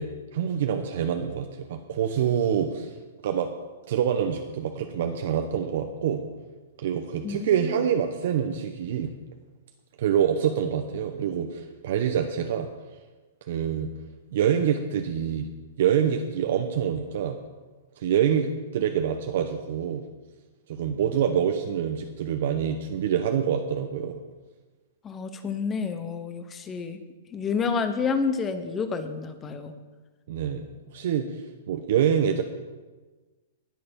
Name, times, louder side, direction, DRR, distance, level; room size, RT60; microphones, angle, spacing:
voice 1, 0.0-3.0 3.2-3.5 3.9-6.2 6.8-9.1 10.0-12.7 13.5-13.9 14.3-15.5 15.8-17.4 18.0-20.0 20.7-24.2 30.3-30.6 30.9-31.4 31.7-32.4, right 8 dB, 55° right, 5 dB, 0.9 m, -26 dB
voice 2, 7.2-7.6 25.0-27.0 27.3-29.7, left 5 dB, 15° left, 9 dB, 0.9 m, -29 dB
19.5 x 6.8 x 5.3 m, 1.3 s
hypercardioid pair, 165°, 0 cm